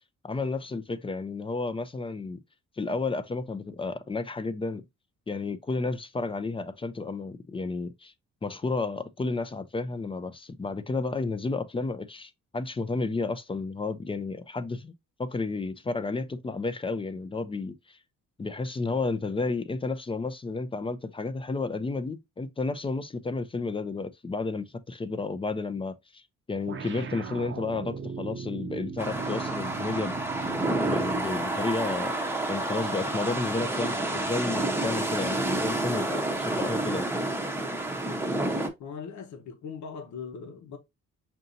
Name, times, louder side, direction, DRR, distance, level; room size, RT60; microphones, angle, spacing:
voice 1, 0.2-2.4 2.8-4.8 5.3-8.1 8.4-14.9 15.2-18.0 18.4-26.2 26.5-30.2 30.8-32.2 32.5-37.1, left 3 dB, 20° left, 0.4 m, -32 dB
sound 1, 26.7-31.4, right 5 dB, 40° right, 0.6 m, -38 dB
sound 2, 29.0-38.7, right 2 dB, 10° right, 0.7 m, -29 dB
voice 2, 38.8-40.8, left 6 dB, 70° left, 1.0 m, -40 dB
5.6 x 2.6 x 2.5 m
cardioid pair, 90°, 30 cm